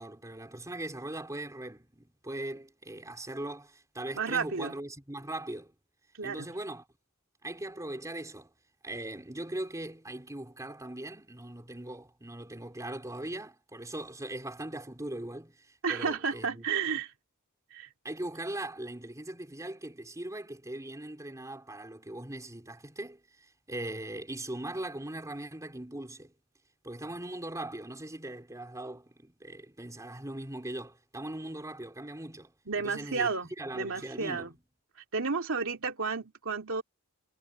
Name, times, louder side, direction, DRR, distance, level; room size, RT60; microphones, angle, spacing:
voice 1, 0.0-5.7 6.2-6.9 7.4-8.5 8.8-16.7 18.0-26.3 26.8-34.5, right 1 dB, 15° right, 3.4 m, -40 dB
voice 2, 4.2-4.7 6.2-6.5 15.8-17.1 17.7-17.9 32.7-33.5 33.7-34.5 35.1-36.8, right 5 dB, 65° right, 2.9 m, -32 dB
head